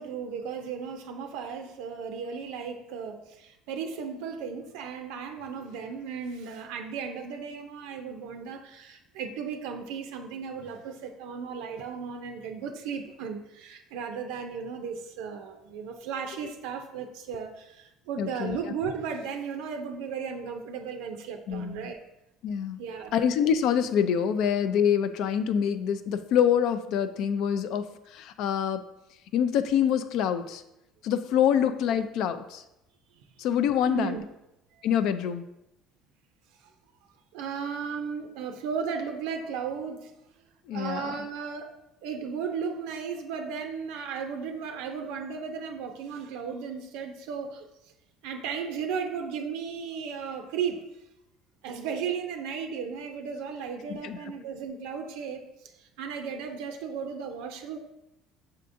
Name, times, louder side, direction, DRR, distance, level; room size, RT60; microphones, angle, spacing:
voice 1, 0.0-22.0 22.8-23.2 33.9-34.2 34.7-34.8 37.3-40.1 40.7-47.7 48.2-50.8 51.6-55.4 55.8-57.8, right 6 dB, 85° right, 5 dB, 0.4 m, -35 dB
voice 2, 18.2-18.6 21.5-21.9 22.4-22.8 23.1-28.8 29.3-30.6 31.0-32.6 33.4-34.2 34.8-35.4 40.7-41.1 53.9-54.2, left 8 dB, 70° left, 11 dB, 0.3 m, -26 dB
5.8 x 3.6 x 2.5 m, 0.88 s
supercardioid pair, 100°, 0 cm